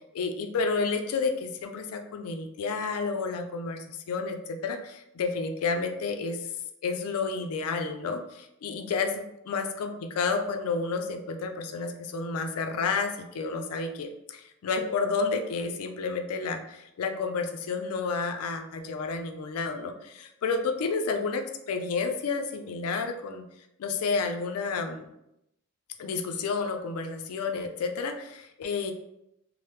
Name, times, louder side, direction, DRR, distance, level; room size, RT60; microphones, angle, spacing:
voice 1, 0.1-6.5 6.8-23.4 23.8-25.1 26.0-28.9, left 4 dB, 90° left, 6 dB, 0.4 m, -30 dB
3.1 x 2.0 x 3.0 m, 0.81 s
head